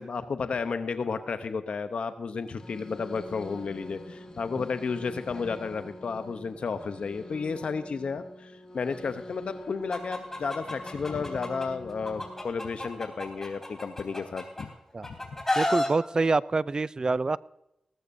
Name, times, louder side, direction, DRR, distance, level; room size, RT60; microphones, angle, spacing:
voice 1, 0.0-14.7 15.0-15.2, left 5 dB, 70° left, 9 dB, 0.7 m, -32 dB
sound 1, 2.5-12.4, left 1 dB, 40° left, 1.9 m, -45 dB
Chicken rooster, 9.9-11.7 12.0-14.6 15.0-15.9, left 1 dB, 20° left, 3.8 m, -30 dB
voice 2, 15.6-17.4, right 3 dB, 40° right, 19 dB, 0.4 m, -26 dB
18.5 x 13.5 x 2.6 m, 0.87 s
cardioid pair, 60°, 2 cm